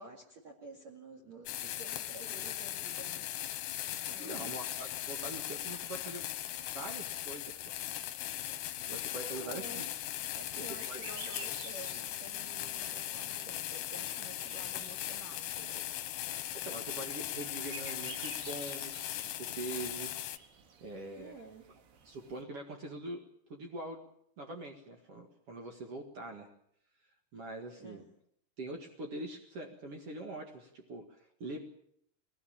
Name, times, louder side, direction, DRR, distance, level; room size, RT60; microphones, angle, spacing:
voice 1, 0.0-4.7 9.2-9.9 10.3-15.8 21.2-21.7 27.8-28.1, right 2 dB, 45° right, 1 dB, 2.8 m, -51 dB
sound 1, 1.5-20.4, left 13 dB, 70° left, 2.7 m, -39 dB
voice 2, 4.2-6.2 6.6-7.8 8.8-9.9 10.5-11.0 16.5-20.1 20.8-21.4 22.0-23.2 23.5-24.0 24.4-26.5 27.3-28.0 28.6-31.6, right 2 dB, 80° right, 3 dB, 1.3 m, -43 dB
sound 2, 4.7-22.4, right 5 dB, 60° right, 4.0 m, -55 dB
22.0 x 18.0 x 8.8 m, 0.70 s
omnidirectional pair, 6.0 m